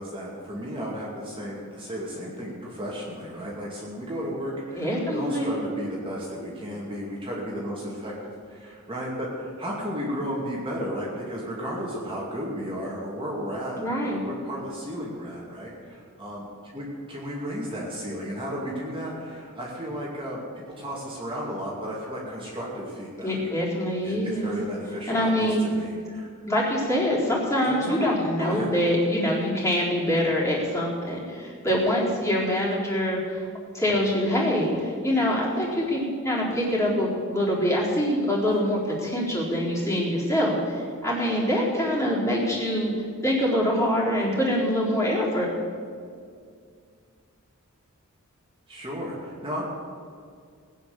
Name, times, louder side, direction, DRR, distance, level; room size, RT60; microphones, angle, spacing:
voice 1, 0.0-20.4 20.8-23.4 24.0-26.3 27.6-28.1 28.4-28.7 48.7-49.6, equal, 25° right, -4 dB, 2.5 m, -34 dB
voice 2, 4.7-5.5 13.8-14.2 23.2-24.5 25.1-25.7 26.5-33.5 33.7-42.9 43.2-45.5, equal, 15° left, -6 dB, 4.1 m, -24 dB
19.5 x 9.3 x 7.0 m, 2.2 s
head